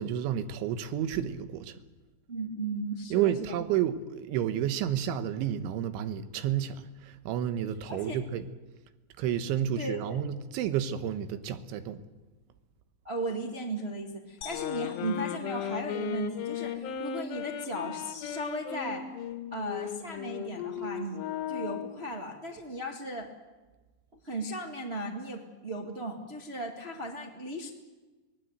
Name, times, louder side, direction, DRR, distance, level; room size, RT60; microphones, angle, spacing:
voice 1, 0.0-1.8 3.1-8.5 9.2-12.0, right 10 dB, 90° right, 3.6 m, -31 dB
voice 2, 2.3-3.5 7.9-8.2 9.7-10.2 13.0-19.1 19.5-21.2 21.5-23.3 24.2-27.7, right 1 dB, 45° right, 0.8 m, -36 dB
sound 1, 14.4-16.4, left 8 dB, 85° left, 5.3 m, -48 dB
sound 2, 14.5-22.0, left 9 dB, 70° left, 3.6 m, -36 dB
25.5 x 19.5 x 8.0 m
omnidirectional pair, 5.3 m